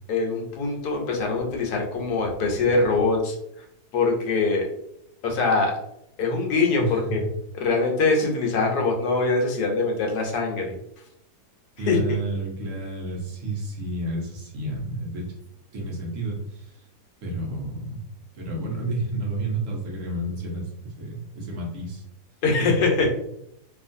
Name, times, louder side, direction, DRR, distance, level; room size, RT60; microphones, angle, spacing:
voice 1, 0.1-3.4 3.9-4.7 5.2-5.7 6.2-7.2 7.6-10.7 11.9-12.0 22.4-23.1, left 3 dB, 80° left, 1 dB, 1.2 m, -23 dB
voice 2, 6.8-7.3 11.8-15.4 15.7-16.9 17.2-18.0 18.3-22.0, right 2 dB, 60° right, -1 dB, 0.9 m, -31 dB
2.8 x 2.4 x 2.5 m, 0.77 s
omnidirectional pair, 1.8 m